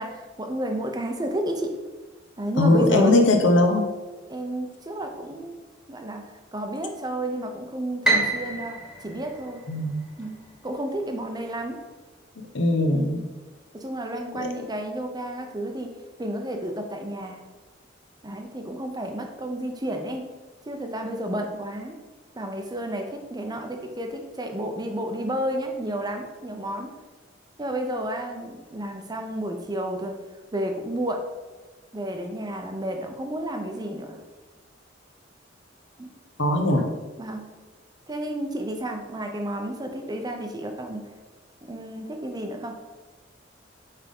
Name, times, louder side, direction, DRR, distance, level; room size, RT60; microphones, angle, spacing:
voice 1, 0.0-1.7 2.4-3.2 4.3-5.6 5.9-9.6 10.2-11.8 12.9-13.2 13.7-15.9 16.2-17.4 18.2-20.3 20.7-22.0 22.4-26.9 27.6-30.2 30.5-31.2 31.9-34.2 36.0-36.1 37.2-37.5 38.1-41.1 41.6-42.8, right 1 dB, 20° right, 4 dB, 0.6 m, -31 dB
voice 2, 2.6-3.8 9.7-10.0 12.4-13.3 14.3-14.5 36.4-37.0, left 2 dB, 75° left, 4 dB, 0.9 m, -20 dB
Piano, 8.0-10.3, right 2 dB, ahead, 1.3 m, -27 dB
5.8 x 3.6 x 5.2 m, 1.3 s
head